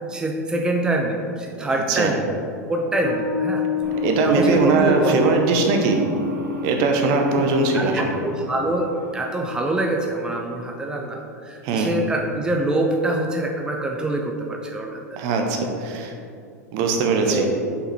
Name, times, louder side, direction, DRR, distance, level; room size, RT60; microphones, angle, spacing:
voice 1, 0.1-2.3 2.7-3.7 4.2-5.2 7.7-15.2 17.3-17.5, right 1 dB, 10° right, 1 dB, 0.5 m, -25 dB
Bass guitar, 3.0-10.2, left 8 dB, 70° left, 1.1 m, -31 dB
sound 1, 3.8-10.2, right 1 dB, 70° right, 1.4 m, -33 dB
voice 2, 4.0-6.0 6.6-8.1 11.6-11.9 15.2-16.1 16.7-17.5, right 4 dB, 50° right, 3 dB, 0.9 m, -20 dB
5.2 x 4.8 x 4.4 m, 2.4 s
figure-of-eight pair, 90°, 9 cm